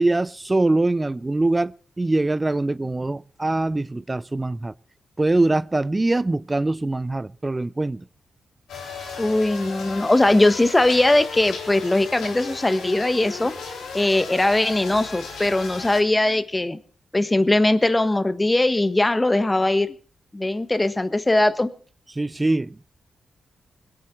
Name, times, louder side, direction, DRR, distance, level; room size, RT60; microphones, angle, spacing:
voice 1, 0.0-4.7 5.2-8.1 22.2-22.8, right 2 dB, 25° right, 0.5 m, -23 dB
sound 1, 8.7-16.0, left 4 dB, 85° left, 3.7 m, -35 dB
voice 2, 9.2-13.5 13.9-16.8 17.1-19.9 20.3-21.7, left 2 dB, 25° left, 1.4 m, -20 dB
22.0 x 8.8 x 4.6 m
supercardioid pair, 40°, 0 cm